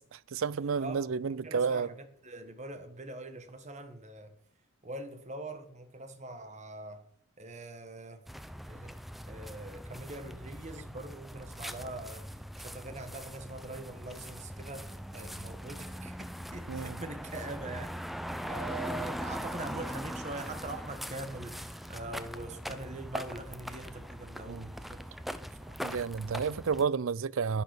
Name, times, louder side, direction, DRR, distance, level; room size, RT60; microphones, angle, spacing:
voice 1, 0.1-1.9 16.7-17.0 24.5-24.7 25.8-27.6, right 6 dB, 70° right, 0.5 m, -31 dB
voice 2, 0.8-4.3 4.8-7.1 7.4-8.3 8.7-9.0 9.3-25.8, right 2 dB, 35° right, 1.6 m, -43 dB
sound 1, 8.3-26.8, equal, ahead, 0.6 m, -41 dB
10.5 x 10.5 x 6.6 m
head